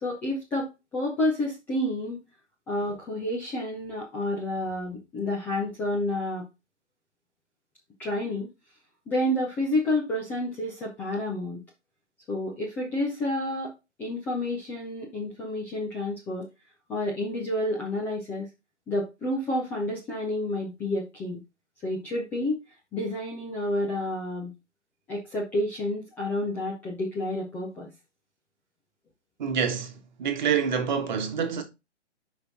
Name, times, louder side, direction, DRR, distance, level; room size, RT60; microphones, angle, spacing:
voice 1, 0.0-2.2 2.7-6.4 8.0-8.5 9.1-11.6 12.3-13.7 14.0-16.5 16.9-18.5 18.9-21.4 21.8-22.6 22.9-24.5 25.1-27.9, left 1 dB, 5° left, 0.6 m, -29 dB
voice 2, 29.4-31.6, right 7 dB, 40° right, 1.5 m, -27 dB
6.8 x 5.4 x 4.1 m
figure-of-eight pair, 140°, 35 cm